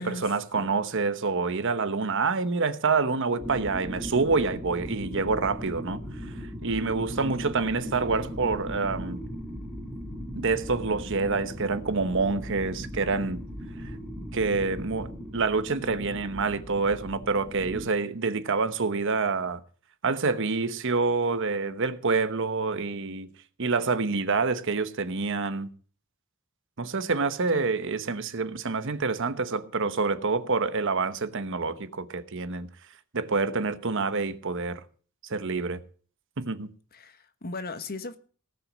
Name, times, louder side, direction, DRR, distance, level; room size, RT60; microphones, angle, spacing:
voice 1, 0.0-6.0 6.6-9.2 10.4-13.4 14.3-19.6 20.0-23.3 23.6-25.7 26.8-32.7 33.1-34.8 35.3-35.8 36.4-36.7, right 4 dB, 60° right, 1.0 m, -27 dB
sound 1, 3.4-17.8, equal, ahead, 2.3 m, -38 dB
voice 2, 36.9-38.2, left 2 dB, 45° left, 1.3 m, -37 dB
18.0 x 6.1 x 7.4 m
head